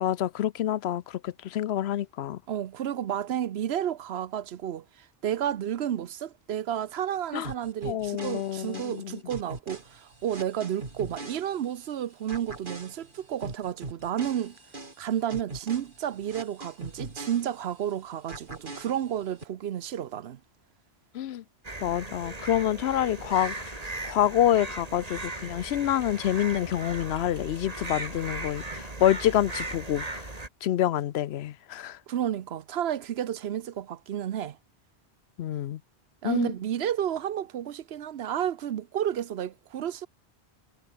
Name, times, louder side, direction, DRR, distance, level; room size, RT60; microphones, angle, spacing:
voice 1, 0.0-2.4 7.3-7.5 7.8-9.2 21.1-21.4 21.8-23.8 24.1-30.3 30.6-32.0 35.4-35.8 36.2-36.5, left 12 dB, 85° left, 0.9 m, -27 dB
voice 2, 2.5-4.8 5.2-14.6 15.0-20.4 32.1-34.6 36.2-40.1, right 10 dB, 80° right, 1.0 m, -31 dB
sound 1, 7.4-11.9 12.3-17.9 18.3-19.4, right 2 dB, 55° right, 3.3 m, -42 dB
sound 2, 21.6-30.5, right 2 dB, 35° right, 2.6 m, -38 dB
omnidirectional pair, 1.1 m